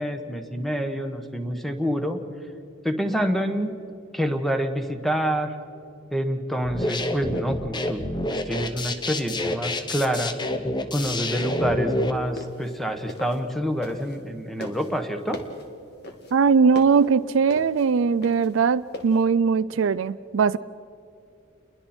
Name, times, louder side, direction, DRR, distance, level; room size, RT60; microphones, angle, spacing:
voice 1, 0.0-2.2 2.8-3.8 4.1-5.5 6.1-8.0 8.3-10.3 10.9-15.4, equal, ahead, 6 dB, 1.3 m, -27 dB
sound 1, 6.6-12.1, left 1 dB, 20° left, 0.9 m, -28 dB
sound 2, 12.2-14.3 14.6-19.2, left 1 dB, 50° left, 2.2 m, -39 dB
voice 2, 16.3-20.6, right 5 dB, 65° right, 15 dB, 0.4 m, -20 dB
29.5 x 22.0 x 4.4 m, 2.6 s
head